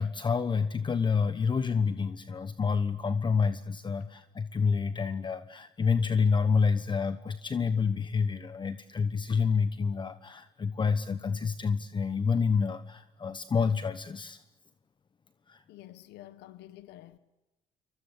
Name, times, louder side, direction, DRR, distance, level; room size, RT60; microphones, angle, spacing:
voice 1, 0.0-14.4 15.5-15.6, left 5 dB, 25° left, 1.1 m, -28 dB
voice 2, 15.7-17.2, left 14 dB, 85° left, 1.5 m, -49 dB
28.5 x 24.0 x 8.4 m
cardioid pair, 110°, 17 cm